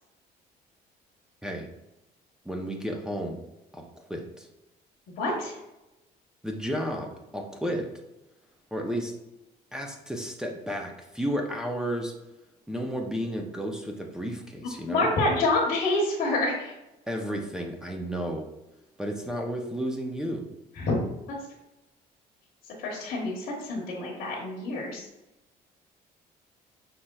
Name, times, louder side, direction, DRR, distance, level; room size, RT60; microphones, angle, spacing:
voice 1, 2.5-3.4 3.7-4.5 6.4-7.9 8.7-9.1 9.7-12.1 12.7-15.1 17.1-18.5 19.0-20.5, equal, 5° right, 0 dB, 0.6 m, -32 dB
voice 2, 5.2-5.6 14.9-16.7 20.8-21.0 22.8-25.1, left 2 dB, 65° left, -3 dB, 1.1 m, -27 dB
5.5 x 3.2 x 2.3 m, 0.95 s
cardioid pair, 110°, 17 cm